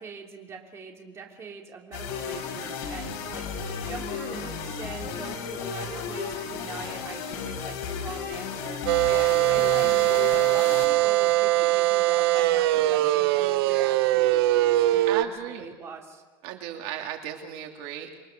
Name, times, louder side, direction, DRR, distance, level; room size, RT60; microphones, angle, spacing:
voice 1, 0.0-16.2, right 5 dB, 20° right, 1 dB, 3.3 m, -42 dB
sound 1, 1.9-11.6, left 6 dB, 60° left, 6.5 m, -34 dB
sound 2, 8.9-15.2, right 16 dB, 85° right, 0.8 m, -22 dB
voice 2, 12.7-13.2 15.1-15.7 16.4-18.2, right 10 dB, 60° right, 3 dB, 2.8 m, -36 dB
29.0 x 23.0 x 6.7 m, 1.4 s
cardioid pair, 160°, 12 cm